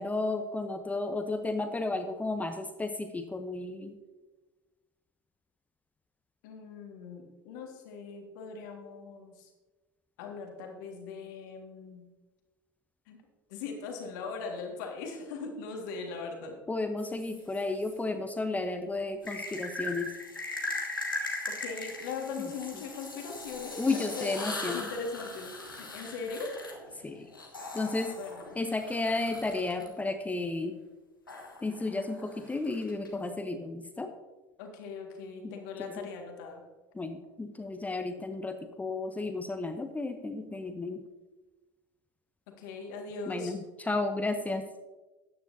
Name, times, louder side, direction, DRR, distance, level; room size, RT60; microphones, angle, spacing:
voice 1, 0.0-3.9 16.7-20.1 23.8-24.9 27.0-27.3 27.7-28.1 28.6-30.7 31.6-34.1 35.4-36.1 36.9-41.0 43.3-44.6, left 2 dB, 15° left, 7 dB, 0.9 m, -33 dB
voice 2, 6.4-9.5 10.2-12.0 13.1-13.2 13.5-16.6 21.5-26.5 28.2-28.4 34.6-36.6 42.5-43.5, left 4 dB, 60° left, 2 dB, 1.9 m, -40 dB
sound 1, 17.0-17.9 19.2-29.9 31.3-33.1, left 2 dB, 85° left, 1.3 m, -40 dB
13.5 x 9.5 x 2.7 m, 1.2 s
figure-of-eight pair, 65°, 11 cm